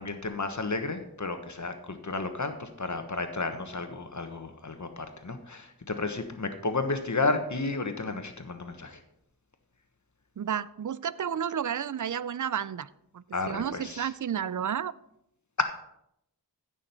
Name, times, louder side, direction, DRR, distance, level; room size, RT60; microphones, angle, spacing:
voice 1, 0.0-9.0 13.3-14.1, left 3 dB, 50° left, 7 dB, 1.3 m, -32 dB
voice 2, 10.4-12.9 13.1-14.9, right 8 dB, 55° right, 18 dB, 0.5 m, -31 dB
15.0 x 6.3 x 4.4 m, 0.78 s
wide cardioid pair, 45°, 37 cm